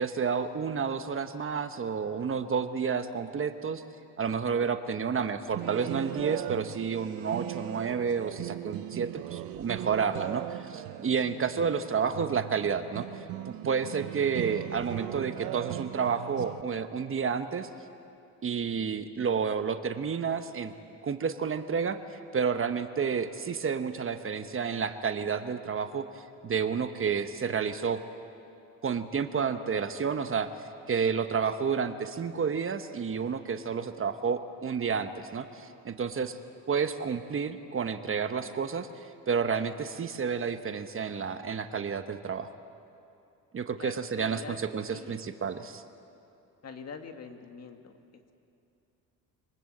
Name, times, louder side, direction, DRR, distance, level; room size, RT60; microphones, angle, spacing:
voice 1, 0.0-3.8 4.2-13.1 13.5-17.7 18.4-20.7 21.0-26.0 26.4-28.0 28.8-30.5 30.9-36.4 36.7-38.9 39.3-42.5 43.5-45.8, right 6 dB, 35° right, 9 dB, 1.1 m, -30 dB
sound 1, 5.5-16.6, right 15 dB, 80° right, 0.7 m, -39 dB
voice 2, 43.8-44.6 44.9-45.3 46.6-48.0, left 5 dB, 45° left, 6 dB, 2.0 m, -44 dB
24.0 x 19.5 x 7.9 m, 2.7 s
cardioid pair, 90°, 35 cm